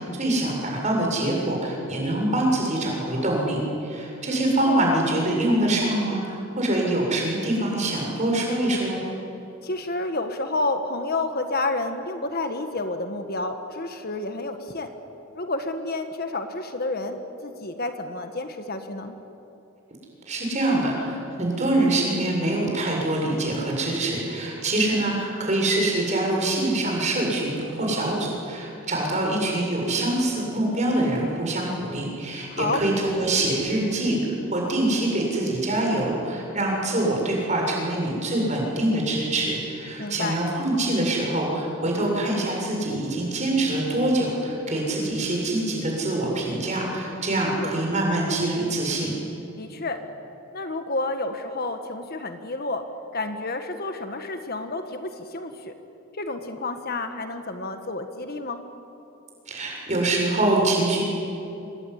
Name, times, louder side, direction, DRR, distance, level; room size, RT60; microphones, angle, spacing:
voice 1, 0.1-9.0 20.3-34.2 34.5-49.1 59.5-61.0, right 1 dB, 35° right, -1 dB, 7.6 m, -24 dB
voice 2, 4.2-4.8 9.6-14.9 15.3-19.2 32.5-32.8 40.0-40.4 47.6-47.8 49.6-50.0 50.5-52.9 53.1-55.7 56.1-58.6, left 2 dB, 45° left, 7 dB, 1.6 m, -30 dB
27.0 x 21.0 x 10.0 m, 2.9 s
head